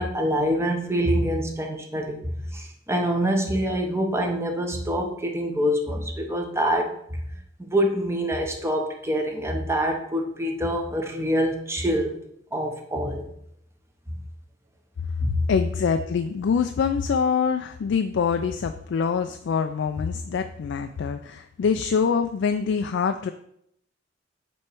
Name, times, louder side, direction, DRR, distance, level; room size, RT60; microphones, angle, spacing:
voice 1, 0.0-2.2 2.5-6.9 7.6-12.2 12.5-13.2 15.2-15.4, equal, 15° right, 2 dB, 0.9 m, -25 dB
voice 2, 15.3-23.3, left 6 dB, 65° left, 7 dB, 0.3 m, -25 dB
7.4 x 3.1 x 4.7 m, 0.72 s
head